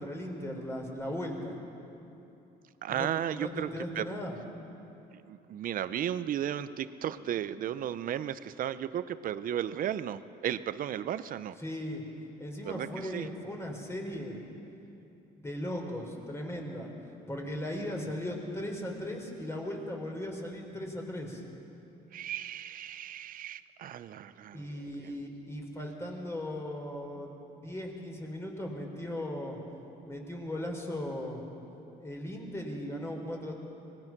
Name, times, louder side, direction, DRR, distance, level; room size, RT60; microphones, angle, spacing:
voice 1, 0.0-1.6 2.9-4.4 11.6-12.0 12.4-14.4 15.3-16.9 17.3-21.4 24.5-29.6 30.0-31.4 32.0-33.5, left 1 dB, 15° left, 1 dB, 4.2 m, -37 dB
voice 2, 2.8-3.7 3.9-4.0 5.3-11.6 12.6-13.3 22.1-24.7, right 10 dB, 55° right, 14 dB, 0.7 m, -34 dB
25.0 x 20.0 x 6.1 m, 2.9 s
cardioid pair, 110°, 17 cm